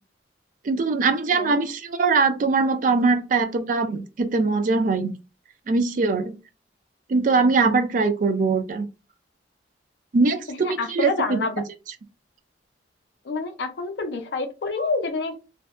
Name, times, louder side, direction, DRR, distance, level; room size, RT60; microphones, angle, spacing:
voice 1, 0.6-5.1 5.7-6.3 7.1-8.8 10.1-11.4, right 4 dB, 45° right, 9 dB, 0.3 m, -22 dB
voice 2, 10.5-11.5 13.2-15.4, left 3 dB, 65° left, 6 dB, 0.4 m, -28 dB
2.6 x 2.1 x 2.3 m, 0.29 s
head